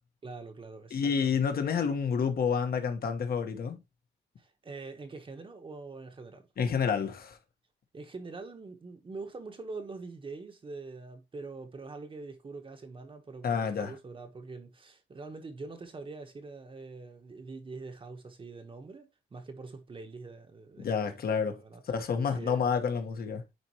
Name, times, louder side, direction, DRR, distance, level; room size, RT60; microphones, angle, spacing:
voice 1, 0.2-1.6 4.4-6.5 7.9-20.9 21.3-22.7, right 3 dB, 30° right, 1.2 m, -44 dB
voice 2, 0.9-3.8 6.6-7.4 13.4-13.9 20.8-21.6 21.9-23.4, left 6 dB, 55° left, 1.5 m, -29 dB
9.7 x 4.5 x 3.0 m
cardioid pair, 140°, 19 cm